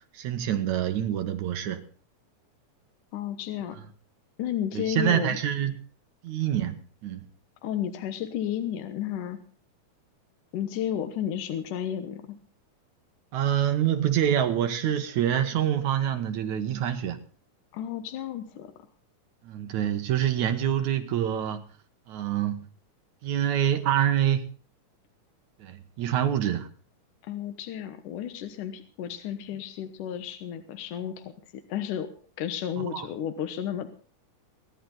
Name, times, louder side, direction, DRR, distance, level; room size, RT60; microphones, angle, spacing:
voice 1, 0.1-1.8 4.8-5.7 6.2-6.8 7.0-7.2 13.3-17.2 19.4-21.6 22.1-22.7 23.2-24.5 25.6-26.7 32.8-33.1, right 10 dB, 70° right, 2.5 m, -26 dB
voice 2, 3.1-3.8 4.4-5.4 7.6-9.4 10.5-12.4 17.7-18.7 27.2-32.1 32.4-33.9, left 10 dB, 80° left, 2.7 m, -32 dB
22.0 x 11.0 x 4.0 m
omnidirectional pair, 3.7 m